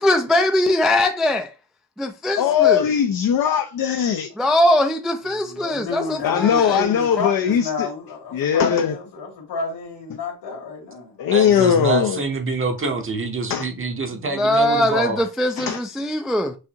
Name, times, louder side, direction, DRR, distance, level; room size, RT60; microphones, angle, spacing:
voice 1, 0.0-1.5 2.0-2.9 4.4-6.8 14.4-16.6, left 1 dB, ahead, 0.3 m, -21 dB
voice 2, 2.4-4.3 6.2-7.9 8.3-8.9 11.2-12.2 13.5-13.6 15.6-15.8, left 8 dB, 55° left, 0.5 m, -19 dB
voice 3, 5.3-11.2, left 4 dB, 70° left, 2.3 m, -30 dB
voice 4, 11.3-15.2 15.6-15.7, right 3 dB, 30° right, 0.7 m, -25 dB
6.3 x 2.5 x 2.8 m
cardioid pair, 120°, 43 cm